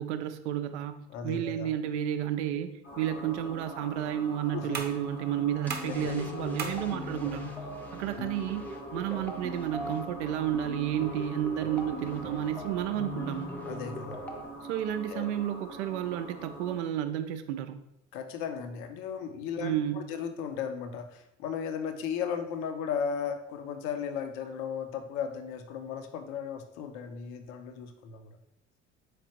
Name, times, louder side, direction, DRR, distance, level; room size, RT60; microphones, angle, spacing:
voice 1, 0.0-7.5 7.9-13.5 14.6-17.8 19.6-20.1, right 11 dB, 70° right, 9 dB, 0.5 m, -32 dB
voice 2, 1.1-1.7 4.5-4.8 5.8-6.2 8.1-8.3 13.6-14.2 15.1-15.3 18.1-28.4, left 7 dB, 55° left, 8 dB, 0.6 m, -36 dB
sound 1, 2.8-16.8, left 1 dB, 85° left, 1.2 m, -42 dB
sound 2, 4.7-10.2, right 6 dB, 30° right, 0.8 m, -45 dB
sound 3, 5.6-14.5, equal, 5° left, 0.5 m, -42 dB
4.1 x 3.3 x 2.9 m, 0.82 s
figure-of-eight pair, 60°, 36 cm